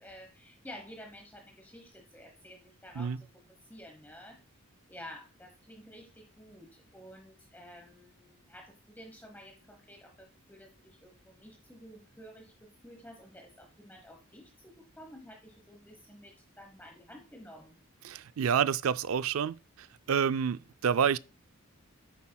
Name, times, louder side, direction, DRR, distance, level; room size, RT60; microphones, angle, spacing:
voice 1, 0.0-4.4 4.9-17.8, equal, 10° left, 1.1 m, -51 dB
voice 2, 18.0-19.5 20.1-21.2, right 7 dB, 75° right, 0.4 m, -28 dB
9.5 x 8.4 x 2.2 m
head